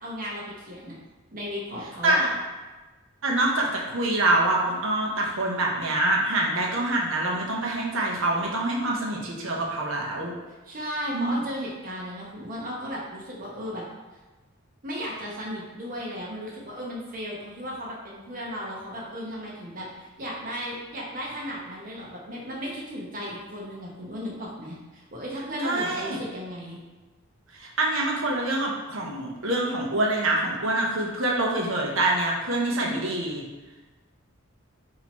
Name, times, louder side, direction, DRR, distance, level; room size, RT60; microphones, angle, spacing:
voice 1, 0.0-1.0 1.3-2.2 10.6-13.8 14.8-26.8, equal, 40° right, -4 dB, 0.9 m, -35 dB
voice 2, 3.2-10.3 11.1-11.4 25.6-26.2 27.6-33.4, right 2 dB, 65° right, -1 dB, 0.9 m, -25 dB
4.4 x 2.9 x 4.2 m, 1.2 s
head